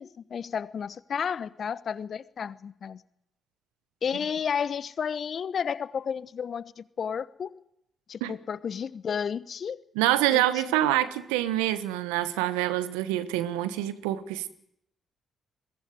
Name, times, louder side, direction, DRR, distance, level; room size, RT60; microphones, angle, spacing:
voice 1, 0.0-3.0 4.0-7.6 8.1-9.8 10.3-10.8, left 7 dB, 55° left, 1.0 m, -32 dB
voice 2, 9.9-14.5, right 14 dB, 80° right, 1.3 m, -26 dB
22.0 x 18.0 x 9.5 m
hypercardioid pair, 40°, 0 cm